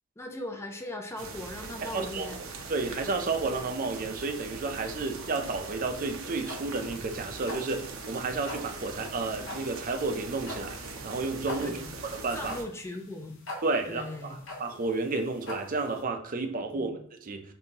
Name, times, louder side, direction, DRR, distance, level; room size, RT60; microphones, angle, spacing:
voice 1, 0.2-2.4 11.6-11.9 12.3-13.4 13.9-14.4 16.7-17.0, left 1 dB, 10° left, 4 dB, 0.4 m, -39 dB
sound 1, 1.2-12.6, right 3 dB, 80° right, 0.7 m, -41 dB
voice 2, 1.8-2.4 2.7-11.8 12.1-12.5 13.6-17.5, right 3 dB, 40° right, 5 dB, 0.5 m, -32 dB
sound 2, 6.0-16.0, left 1 dB, 70° left, 1.0 m, -43 dB
5.3 x 2.7 x 2.8 m, 0.65 s
head